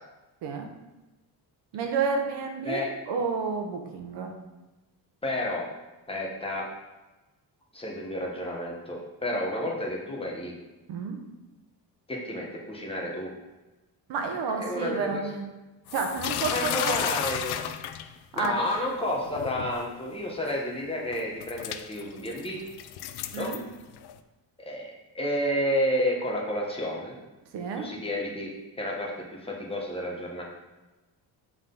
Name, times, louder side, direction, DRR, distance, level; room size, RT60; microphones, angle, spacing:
voice 1, 1.7-2.8 3.1-4.3 10.9-11.2 14.1-15.4 15.9-17.0 18.3-18.7 23.3-23.6 27.5-27.9, right 5 dB, 80° right, 4 dB, 1.0 m, -30 dB
voice 2, 5.2-5.7 6.1-6.7 7.7-10.5 12.1-13.3 14.6-15.2 16.5-17.6 18.3-22.6 23.4-23.5 24.6-27.2 27.8-28.5 28.8-30.4, left 1 dB, 15° left, -2 dB, 1.0 m, -31 dB
sound 1, 15.9-18.6 19.1-19.8 20.5-20.6 21.1-24.2, left 10 dB, 70° left, 0.5 m, -33 dB
7.6 x 3.8 x 3.8 m, 1.1 s
cardioid pair, 165°, 41 cm